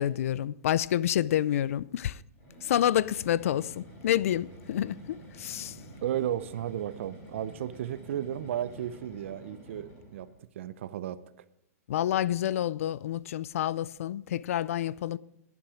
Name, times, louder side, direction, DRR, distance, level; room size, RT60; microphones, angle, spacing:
voice 1, 0.0-2.2 2.6-5.8 11.9-15.2, left 11 dB, 65° left, 0.4 m, -28 dB
sound 1, 2.3-10.4, equal, 25° left, 4.2 m, -49 dB
voice 2, 6.0-10.3 10.6-11.2, right 11 dB, 55° right, 0.6 m, -34 dB
11.5 x 10.5 x 4.9 m
supercardioid pair, 170°, 8 cm